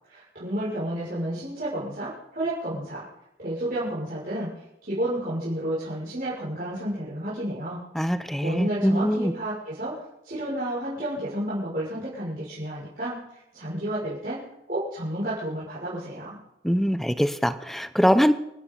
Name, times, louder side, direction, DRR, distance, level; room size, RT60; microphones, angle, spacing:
voice 1, 0.1-3.1 3.4-7.8 8.1-13.2 13.5-14.4 14.7-16.4, right 1 dB, 55° right, -9 dB, 6.3 m, -31 dB
voice 2, 8.0-9.3 16.6-18.3, equal, ahead, 11 dB, 0.7 m, -22 dB
28.5 x 12.5 x 4.0 m, 0.89 s
head